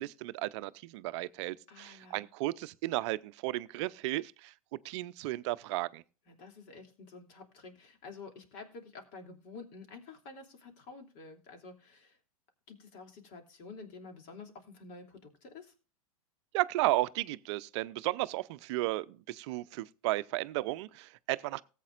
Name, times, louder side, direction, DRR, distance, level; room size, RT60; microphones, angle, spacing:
voice 1, 0.0-4.5 4.8-6.0 16.5-21.6, right 18 dB, 50° right, 0.6 m, -34 dB
voice 2, 1.7-2.3 6.3-12.2 12.7-15.7, left 4 dB, 45° left, 3.0 m, -50 dB
18.5 x 8.2 x 2.5 m
hypercardioid pair, 100°, 18 cm